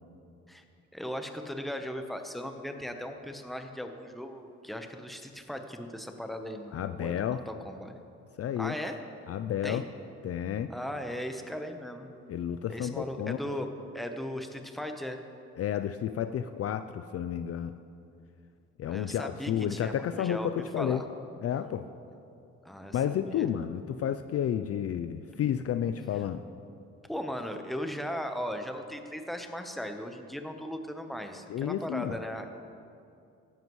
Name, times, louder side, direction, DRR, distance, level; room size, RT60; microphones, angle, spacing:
voice 1, 0.9-7.9 8.6-9.0 9.6-9.8 10.7-12.1 12.7-13.7 13.9-15.2 18.9-21.0 22.6-23.5 27.1-32.4, equal, ahead, 5 dB, 0.9 m, -37 dB
voice 2, 6.7-7.4 8.4-8.8 9.3-9.8 10.2-10.7 12.3-13.4 15.6-17.7 18.8-21.0 21.4-21.9 22.9-26.4 31.5-32.2, left 9 dB, 50° left, 10 dB, 0.4 m, -31 dB
15.5 x 11.0 x 3.1 m, 2.6 s
cardioid pair, 90°, 30 cm